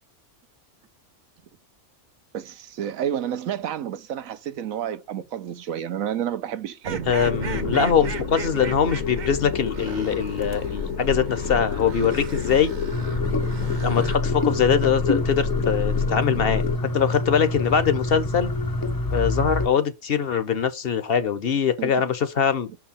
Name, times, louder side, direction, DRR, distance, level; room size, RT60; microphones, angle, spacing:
voice 1, 2.3-7.1 21.8-21.9, right 9 dB, 75° right, 1.2 m, -30 dB
sound 1, 6.8-14.2, right 5 dB, 40° right, 0.8 m, -35 dB
voice 2, 7.1-12.7 13.8-18.5 19.1-22.7, left 7 dB, 50° left, 0.9 m, -22 dB
sound 2, 7.2-16.8, left 7 dB, 85° left, 1.1 m, -29 dB
sound 3, 12.9-19.7, left 1 dB, 25° left, 0.4 m, -27 dB
6.3 x 4.6 x 5.6 m
omnidirectional pair, 1.4 m